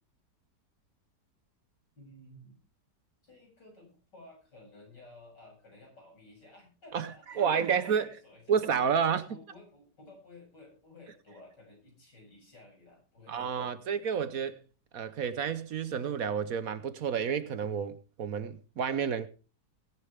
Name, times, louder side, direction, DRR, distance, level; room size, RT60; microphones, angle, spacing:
voice 1, 2.0-2.6 3.2-8.6 9.3-13.9, left 2 dB, 85° left, 8.2 m, -54 dB
voice 2, 7.4-8.1 8.5-9.3 13.3-14.6 14.9-19.3, right 7 dB, 60° right, 1.2 m, -30 dB
20.5 x 10.0 x 3.5 m
omnidirectional pair, 1.8 m